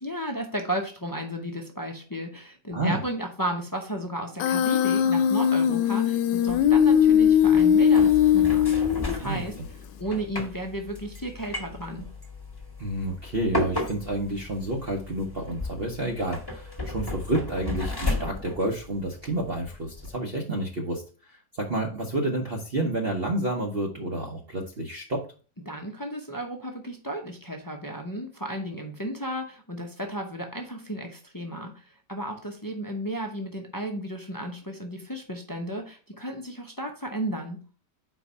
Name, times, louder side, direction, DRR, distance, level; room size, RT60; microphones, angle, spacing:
voice 1, 0.0-9.6 10.0-12.0 25.7-31.8 32.1-37.6, right 1 dB, 30° left, 2 dB, 0.3 m, -34 dB
Human voice, 4.4-9.4, left 9 dB, 90° left, 1.2 m, -20 dB
sound 1, 6.5-20.1, left 2 dB, 15° left, 1.2 m, -35 dB
voice 2, 12.8-25.2, right 1 dB, 45° right, 0 dB, 0.9 m, -30 dB
4.6 x 4.6 x 5.4 m, 0.37 s
omnidirectional pair, 1.9 m